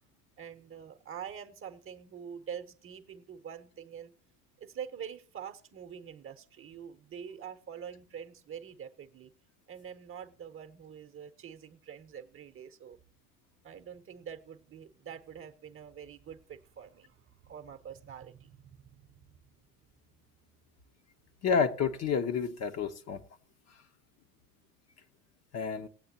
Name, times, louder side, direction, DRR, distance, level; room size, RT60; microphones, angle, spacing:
voice 1, 0.4-4.1 4.6-9.3 9.7-13.0 13.6-19.1, right 8 dB, 30° right, 1.0 m, -45 dB
voice 2, 21.4-23.2 25.5-25.9, left 6 dB, 35° left, 0.9 m, -29 dB
19.0 x 8.5 x 2.9 m
figure-of-eight pair, 70°, 45 cm